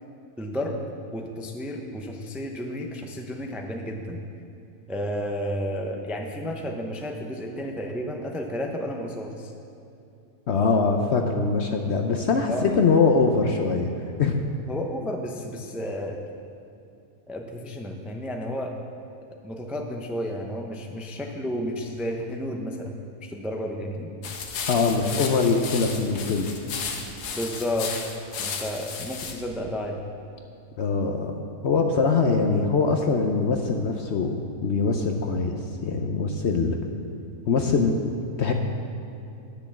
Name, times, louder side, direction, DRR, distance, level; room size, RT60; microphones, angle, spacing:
voice 1, 0.4-0.8 1.1-4.2 4.9-9.5 12.5-12.8 14.7-16.2 17.3-18.7 19.4-22.9 23.2-24.1 27.3-27.9 28.4-30.0, equal, ahead, 2 dB, 0.3 m, -32 dB
voice 2, 10.5-14.4 24.7-26.5 30.8-31.3 31.6-35.6 35.8-36.8 37.5-37.9 38.4-38.5, left 4 dB, 60° left, 4 dB, 0.8 m, -23 dB
sound 1, 24.2-29.4, left 5 dB, 80° left, 1.5 m, -34 dB
10.0 x 6.8 x 7.1 m, 2.7 s
omnidirectional pair, 1.7 m